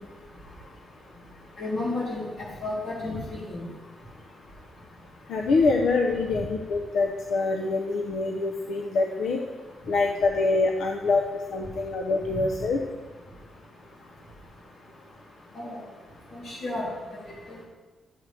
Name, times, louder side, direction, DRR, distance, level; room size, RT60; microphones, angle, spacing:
voice 1, 1.6-2.3 2.6-3.2 3.5-3.6 12.3-12.4 15.5-15.8 16.3-16.8, left 2 dB, 45° left, -5 dB, 3.0 m, -31 dB
voice 2, 5.3-9.4 9.9-11.2 11.5-12.8, left 3 dB, 75° left, 2 dB, 0.7 m, -25 dB
11.0 x 7.6 x 3.3 m, 1.3 s
wide cardioid pair, 175°, 0 cm